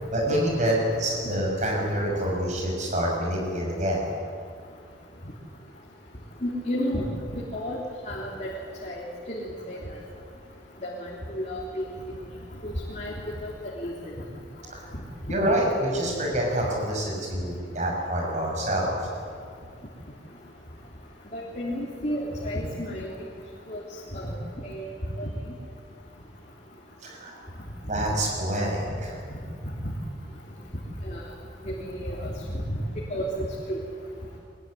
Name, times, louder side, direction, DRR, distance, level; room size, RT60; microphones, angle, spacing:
voice 1, 0.1-4.1 14.7-14.8 15.3-18.9 27.0-27.4 27.8-29.2, right 1 dB, 40° right, -1 dB, 6.3 m, -27 dB
voice 2, 6.4-7.0 7.3-8.5 8.8-9.0 9.3-9.8 10.8-11.8 12.6-13.1 13.4-13.5 13.8-13.9 21.3-23.1 23.7-23.8 24.1-24.3 24.6-24.8 25.2-25.3 31.1-31.2 31.6-31.7 32.0-32.3 33.1-33.3 33.7-33.8, equal, 40° left, -4 dB, 3.6 m, -31 dB
24.0 x 21.5 x 9.9 m, 2.2 s
head